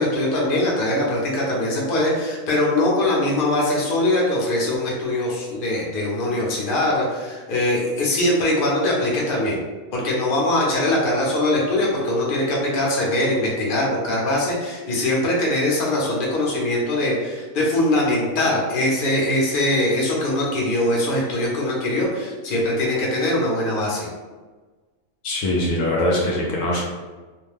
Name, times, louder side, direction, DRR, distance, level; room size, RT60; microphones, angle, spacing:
voice 1, 0.0-9.6 9.9-24.1, left 1 dB, 45° left, -4 dB, 0.8 m, -22 dB
voice 2, 25.2-26.8, left 1 dB, 75° left, -3 dB, 0.9 m, -22 dB
2.5 x 2.2 x 3.2 m, 1.3 s
omnidirectional pair, 1.4 m